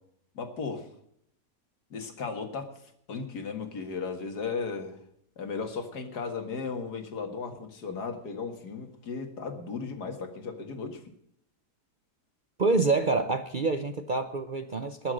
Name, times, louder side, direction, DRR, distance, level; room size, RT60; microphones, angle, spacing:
voice 1, 0.3-0.9 1.9-2.7 3.1-5.0 5.4-11.0, left 5 dB, 75° left, 6 dB, 2.4 m, -35 dB
voice 2, 12.6-15.1, right 3 dB, 45° right, 8 dB, 0.7 m, -27 dB
20.5 x 7.1 x 6.5 m, 0.69 s
omnidirectional pair, 1.8 m